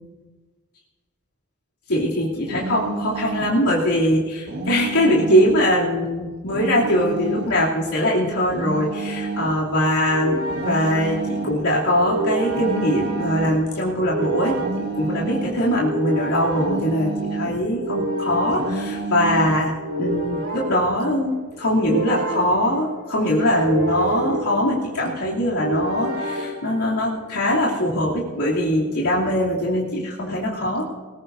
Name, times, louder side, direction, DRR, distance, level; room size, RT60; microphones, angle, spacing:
voice 1, 1.9-19.7 20.0-30.9, equal, 80° left, -5 dB, 2.9 m, -22 dB
sound 1, 2.5-3.6 4.5-5.6 6.5-7.6 8.5-9.6 10.5-11.6 12.5-13.6 14.5-15.6 16.5-17.6 18.5-19.6, right 3 dB, 55° right, 1.6 m, -30 dB
sound 2, 8.9-27.3, right 1 dB, 90° right, 4.3 m, -29 dB
20.0 x 19.5 x 2.7 m, 1.3 s
head